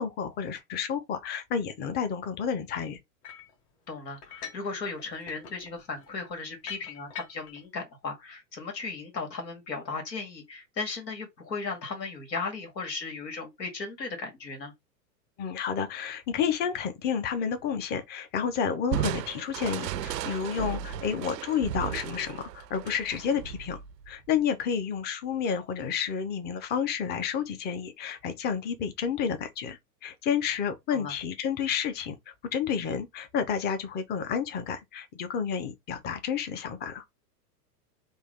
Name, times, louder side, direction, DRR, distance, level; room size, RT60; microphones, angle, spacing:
voice 1, 0.0-3.0 15.4-23.8 24.1-32.2 32.5-37.0, left 7 dB, 20° left, 0.6 m, -30 dB
sound 1, 3.2-3.5 4.2-4.7 5.0-7.6, left 8 dB, 40° left, 1.6 m, -43 dB
voice 2, 3.9-14.7 20.7-20.8 30.9-31.1, left 4 dB, 90° left, 1.9 m, -36 dB
Crushing, 18.9-24.3, right 10 dB, 80° right, 0.6 m, -35 dB
3.5 x 2.4 x 3.6 m
hypercardioid pair, 110°, 49 cm